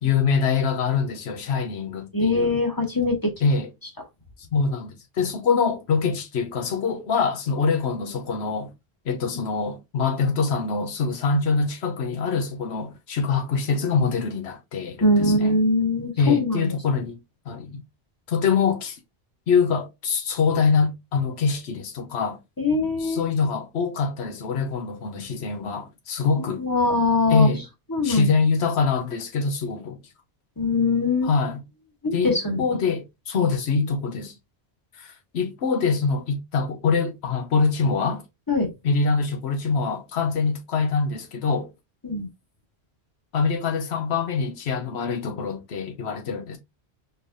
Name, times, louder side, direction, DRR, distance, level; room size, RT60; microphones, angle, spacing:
voice 1, 0.0-2.6 3.4-3.7 4.5-8.7 9.1-15.5 16.2-17.2 17.5-17.8 18.3-19.0 19.5-22.4 23.0-26.6 27.3-27.6 28.0-30.0 31.2-31.6 32.1-34.3 35.0-38.2 38.8-41.7 43.3-46.6, left 5 dB, 85° left, 1.1 m, -24 dB
voice 2, 2.1-3.3 15.0-16.7 22.6-23.3 26.6-27.5 27.9-28.3 30.6-31.3 32.0-32.6 38.5-38.7 42.0-42.3, left 2 dB, 20° left, 1.1 m, -22 dB
4.4 x 3.2 x 2.6 m
omnidirectional pair, 1.1 m